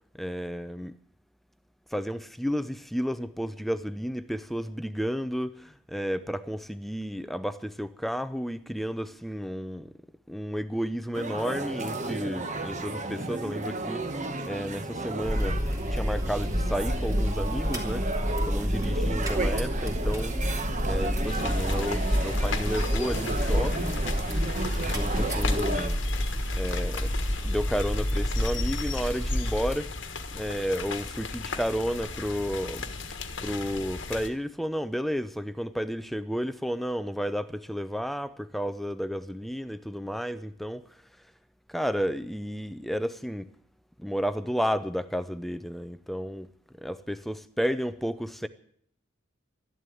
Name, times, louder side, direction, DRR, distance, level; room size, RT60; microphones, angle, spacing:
voice 1, 0.1-0.9 1.9-9.9 10.3-14.2 14.4-15.6 15.9-20.4 20.8-24.0 24.8-26.0 26.5-30.1 30.3-32.9 33.4-40.8 41.7-43.5 44.0-46.5 46.8-48.5, equal, ahead, 0.5 m, -32 dB
sound 1, 11.1-25.9, right 2 dB, 35° right, 1.2 m, -33 dB
sound 2, 15.2-29.7, equal, 15° right, 2.2 m, -29 dB
sound 3, 21.3-34.3, left 4 dB, 65° left, 1.4 m, -37 dB
13.0 x 11.0 x 9.2 m
head